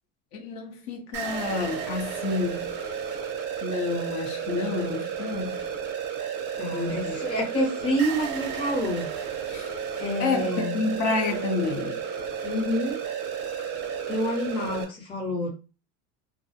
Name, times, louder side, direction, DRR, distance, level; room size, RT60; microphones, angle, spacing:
voice 1, 0.3-2.7 3.6-5.6 6.7-7.2 9.5-9.7 10.2-12.0, left 4 dB, 60° left, 0.7 m, -29 dB
sound 1, 1.1-14.8, right 7 dB, 35° right, 0.5 m, -32 dB
voice 2, 6.6-9.1 10.0-10.8 12.4-13.0 14.1-15.5, equal, 15° left, 0.6 m, -28 dB
2.4 x 2.0 x 2.6 m
cardioid pair, 150°, 33 cm